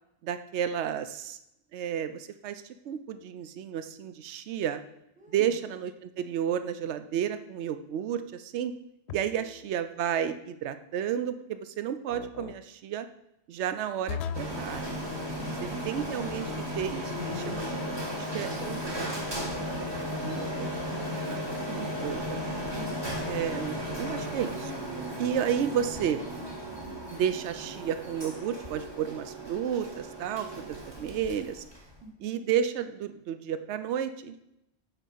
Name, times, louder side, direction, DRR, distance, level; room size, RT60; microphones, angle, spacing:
voice 1, 0.2-1.4 1.7-4.8 5.3-8.7 9.1-13.1 13.5-14.9 15.8-16.4 16.8-17.7 18.1-19.2 19.6-22.4 23.2-24.7 25.2-26.2 27.1-31.6 32.2-34.4, right 9 dB, 85° right, 11 dB, 0.9 m, -32 dB
voice 2, 5.2-5.6 9.2-9.6 15.3-16.0 22.5-23.0 32.0-32.4, right 4 dB, 5° right, 2 dB, 1.1 m, -45 dB
sound 1, 9.1-9.6 12.1-12.6 14.1-14.6 17.1-17.8, left 7 dB, 75° left, 0.8 m, -37 dB
Printer, 14.3-32.0, equal, 25° right, 1.4 m, -35 dB
8.9 x 4.3 x 5.4 m, 0.81 s
omnidirectional pair, 1.1 m